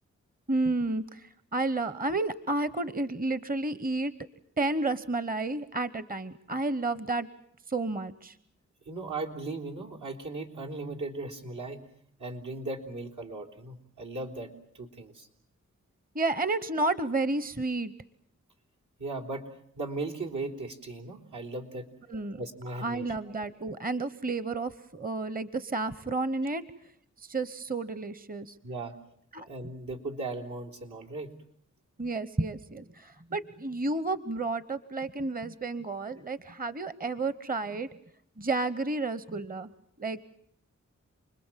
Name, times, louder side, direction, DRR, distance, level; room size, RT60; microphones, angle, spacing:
voice 1, 0.5-4.1 4.6-7.3 7.7-8.4 16.1-17.9 22.1-22.4 22.7-26.6 27.2-28.6 29.3-29.5 32.0-37.9 38.4-39.7 40.0-40.2, right 2 dB, 30° right, 16 dB, 1.0 m, -31 dB
voice 2, 8.9-11.8 12.2-15.3 19.0-19.5 19.8-21.9 22.4-23.1 28.6-29.0 29.5-31.3, right 2 dB, 80° right, -1 dB, 3.6 m, -37 dB
29.0 x 21.0 x 7.5 m, 0.68 s
cardioid pair, 55°, 30 cm